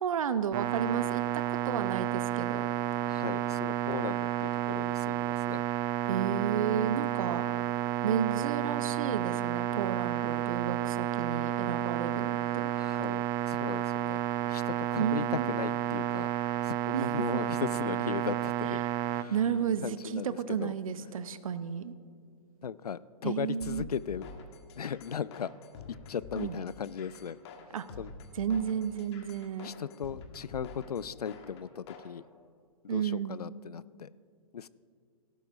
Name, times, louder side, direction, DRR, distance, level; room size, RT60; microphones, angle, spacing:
voice 1, 0.0-2.7 6.1-7.4 8.0-12.7 15.0-15.5 16.9-17.2 18.8-18.9 19.3-21.9 23.2-23.9 26.4-26.6 27.7-27.9 28.3-29.7 32.9-33.4, right 8 dB, 60° right, 14 dB, 0.7 m, -32 dB
sound 1, 0.5-19.2, right 12 dB, 20° right, 0.4 m, -31 dB
voice 2, 3.1-5.6 12.7-16.3 16.6-18.8 19.1-19.3 19.8-20.7 22.6-24.3 24.8-25.5 26.1-27.4 28.0-28.1 29.6-32.2 32.8-34.1 34.5-34.7, left 7 dB, 75° left, 18 dB, 0.4 m, -37 dB
sound 2, 23.6-32.1, left 4 dB, 45° left, 1.5 m, -47 dB
18.0 x 12.0 x 2.5 m, 2.2 s
figure-of-eight pair, 115°, 20 cm